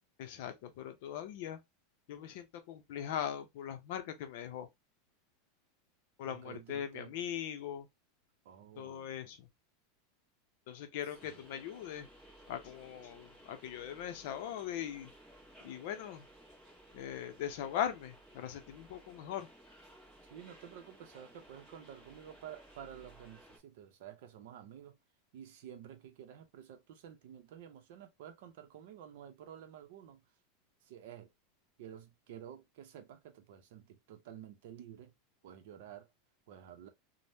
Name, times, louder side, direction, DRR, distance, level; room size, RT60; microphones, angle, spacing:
voice 1, 0.2-1.6 2.1-4.7 6.2-7.9 8.8-9.5 10.7-12.1 12.5-15.1 15.6-16.2 16.9-19.5, left 10 dB, 60° left, 0.5 m, -40 dB
voice 2, 6.2-7.2 8.4-9.2 11.2-11.4 20.3-25.0 25.3-30.2 30.8-31.3 31.8-35.1 35.4-36.1 36.5-36.9, right 9 dB, 65° right, 0.6 m, -51 dB
sound 1, 11.1-23.6, right 1 dB, 5° right, 1.2 m, -58 dB
3.4 x 2.0 x 2.6 m
supercardioid pair, 165°, 0 cm